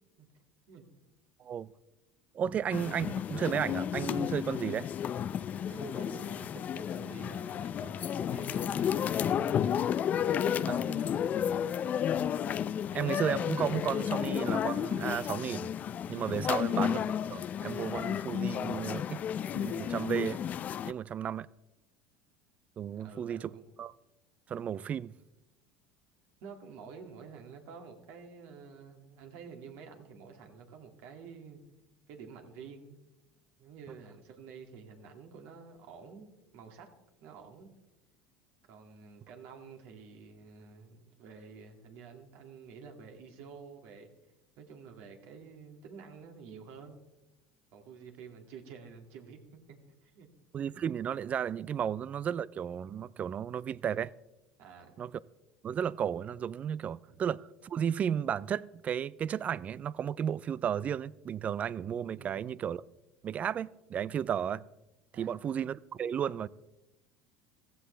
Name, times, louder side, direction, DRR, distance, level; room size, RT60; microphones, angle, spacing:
voice 1, 1.4-1.7 2.3-4.9 10.7-11.0 12.9-15.7 16.1-17.0 17.3-19.2 19.5-20.4 20.9-21.5 22.8-23.9 24.5-25.1 50.5-54.1 55.0-55.1 55.6-62.8 63.2-64.7 65.2-66.5, right 8 dB, 35° right, 0.4 m, -33 dB
sound 1, 2.7-20.9, left 9 dB, 40° left, 0.5 m, -32 dB
voice 2, 5.7-9.7 10.1-11.7 16.4-16.7 22.9-23.6 26.4-31.6 32.1-33.0 33.6-36.9 37.2-37.7 38.6-44.1 44.6-47.0 47.7-50.3 54.6-55.1 57.1-57.2 62.2-62.5 65.1-65.5, right 6 dB, 65° right, 2.4 m, -50 dB
15.5 x 15.0 x 3.4 m
supercardioid pair, 95°, 4 cm